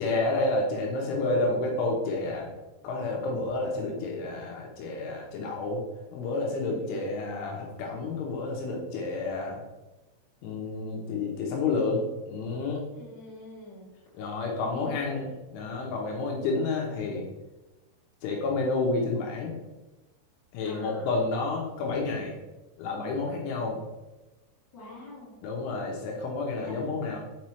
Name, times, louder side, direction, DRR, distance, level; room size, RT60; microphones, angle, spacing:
voice 1, 0.0-2.5 2.8-5.8 6.1-9.6 10.4-12.8 14.2-17.3 18.2-19.6 20.5-22.3 22.8-23.8 25.4-27.2, left 3 dB, 75° left, -1 dB, 3.2 m, -30 dB
voice 2, 6.6-7.0 12.9-13.9 14.7-15.2 20.6-21.1 24.7-25.4 26.6-26.8, left 2 dB, 40° left, -7 dB, 1.6 m, -45 dB
7.1 x 5.1 x 3.1 m, 1.1 s
omnidirectional pair, 5.9 m